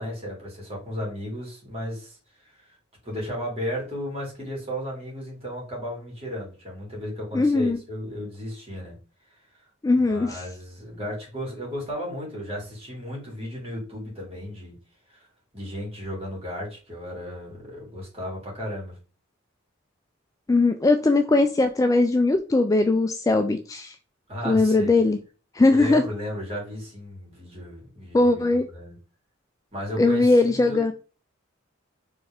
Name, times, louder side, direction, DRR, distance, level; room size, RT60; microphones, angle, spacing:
voice 1, 0.0-2.2 3.0-9.0 10.0-14.7 15.1-15.3 15.5-19.0 24.3-25.0 25.7-28.9 29.7-30.9, equal, 30° right, -3 dB, 2.6 m, -34 dB
voice 2, 7.3-7.8 9.8-10.4 20.5-23.9 24.5-25.2 25.5-26.0 28.1-28.7 30.0-30.9, left 2 dB, 15° left, 7 dB, 0.3 m, -20 dB
4.4 x 3.3 x 3.5 m, 0.35 s
head